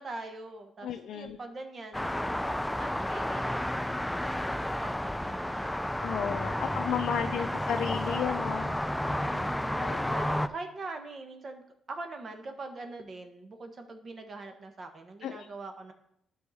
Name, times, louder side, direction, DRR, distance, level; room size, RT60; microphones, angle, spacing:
voice 1, 0.0-6.9 7.3-7.5 9.0-11.6 11.9-15.9, right 3 dB, 40° right, 5 dB, 1.3 m, -43 dB
voice 2, 0.8-1.4 6.0-8.7 9.8-10.3 15.2-15.5, left 8 dB, 75° left, 6 dB, 0.4 m, -33 dB
sound 1, 1.9-10.5, left 1 dB, 5° left, 0.3 m, -31 dB
11.5 x 4.7 x 4.2 m, 0.77 s
cardioid pair, 90°, 0 cm